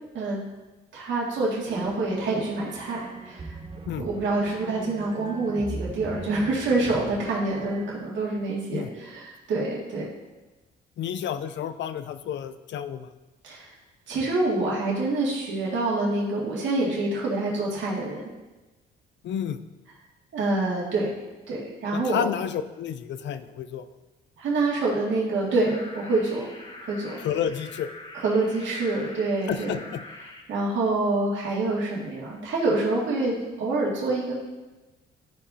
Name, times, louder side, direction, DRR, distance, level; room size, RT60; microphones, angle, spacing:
voice 1, 0.9-3.0 3.2-3.6 4.0-10.1 13.4-13.7 14.1-18.2 20.3-21.1 21.5-22.3 24.4-26.5 26.8-27.2 28.1-29.7 30.5-34.3, right 2 dB, 70° right, -5 dB, 2.1 m, -26 dB
sound 1, 1.7-8.4, right 3 dB, 25° right, 0.6 m, -40 dB
voice 2, 11.0-13.1 19.2-19.6 21.9-23.9 27.2-27.9 29.5-30.0, left 9 dB, 65° left, 11 dB, 0.5 m, -30 dB
sound 2, 25.6-30.4, left 2 dB, 25° left, 1.8 m, -44 dB
12.5 x 5.0 x 2.8 m, 1.1 s
cardioid pair, 90°, 20 cm